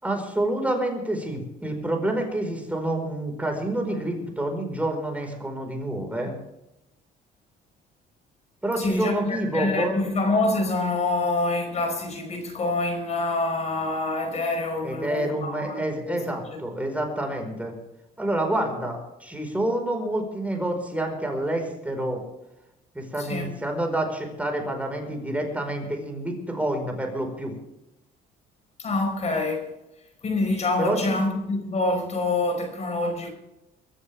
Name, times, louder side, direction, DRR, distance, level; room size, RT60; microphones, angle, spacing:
voice 1, 0.0-6.3 8.6-9.9 14.8-17.7 18.2-22.2 22.9-27.5 30.8-31.2, right 1 dB, 10° right, 4.9 m, -28 dB
voice 2, 8.8-16.2 23.2-23.5 28.8-29.7 30.2-33.3, left 2 dB, 40° left, 4.9 m, -26 dB
24.0 x 14.0 x 3.6 m
cardioid pair, 110°, 17 cm